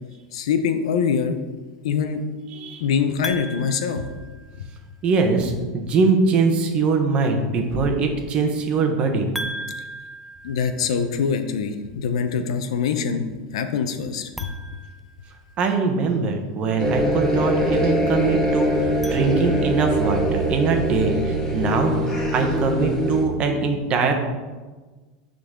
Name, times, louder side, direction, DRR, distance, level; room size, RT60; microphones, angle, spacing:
voice 1, 0.3-1.4 1.8-2.2 2.8-4.1 10.4-13.2 13.5-14.5, left 6 dB, 90° left, 8 dB, 0.7 m, -24 dB
voice 2, 2.5-2.8 5.0-9.3 15.6-22.0 22.3-24.1, right 4 dB, 35° right, 4 dB, 1.1 m, -22 dB
sound 1, 3.2-4.9 9.3-11.4 14.3-15.9 18.8-20.0, right 1 dB, ahead, 0.4 m, -38 dB
sound 2, 16.8-23.2, right 1 dB, 15° left, 1.7 m, -23 dB
9.7 x 4.0 x 3.7 m, 1.3 s
supercardioid pair, 135°, 3 cm